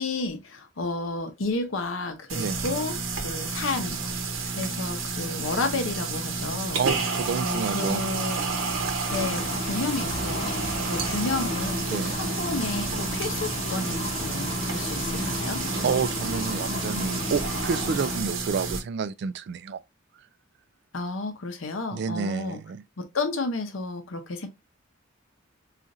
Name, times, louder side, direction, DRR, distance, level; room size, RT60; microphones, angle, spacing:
voice 1, 0.0-4.0 4.5-6.8 7.4-8.4 9.1-15.6 20.9-22.6 23.0-24.5, left 3 dB, 80° left, 0.7 m, -31 dB
voice 2, 2.3-2.7 6.8-8.0 11.9-12.2 15.8-19.8 21.9-22.8, right 5 dB, 60° right, 0.3 m, -29 dB
sound 1, 2.3-18.8, right 4 dB, 85° right, 0.8 m, -30 dB
sound 2, 9.1-18.2, left 2 dB, 35° left, 0.8 m, -34 dB
4.1 x 2.5 x 2.5 m
head